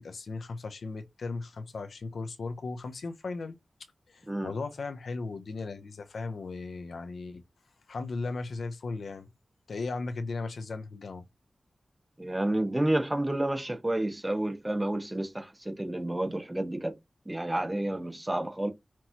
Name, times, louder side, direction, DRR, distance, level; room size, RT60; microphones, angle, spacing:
voice 1, 0.0-3.6 4.1-7.4 7.9-9.3 9.7-11.2, left 3 dB, 85° left, 0.6 m, -36 dB
voice 2, 12.2-16.9 17.3-18.7, right 1 dB, 15° right, 1.0 m, -30 dB
5.8 x 3.0 x 2.8 m
wide cardioid pair, 95°, 0 cm